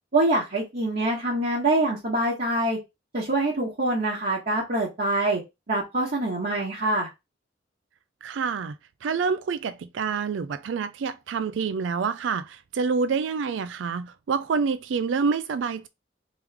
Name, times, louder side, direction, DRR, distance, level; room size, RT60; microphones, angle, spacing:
voice 1, 0.1-2.8 3.1-5.4 5.7-7.1, right 2 dB, 50° right, 1.4 m, -25 dB
voice 2, 8.2-8.7 9.0-15.9, right 5 dB, 70° right, 0.4 m, -27 dB
3.5 x 3.2 x 3.4 m
head